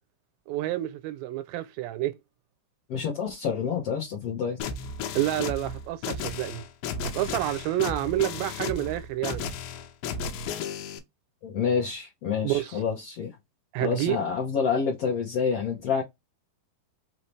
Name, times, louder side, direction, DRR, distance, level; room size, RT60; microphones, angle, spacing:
voice 1, 0.5-2.2 5.1-6.6 7.1-9.5 12.4-12.7 13.7-14.2, right 14 dB, 85° right, 2.4 m, -28 dB
voice 2, 2.9-4.6 11.4-13.3 13.8-16.0, left 6 dB, 65° left, 1.6 m, -28 dB
sound 1, 4.6-11.0, left 5 dB, 85° left, 2.4 m, -34 dB
5.4 x 2.9 x 3.2 m
omnidirectional pair, 4.1 m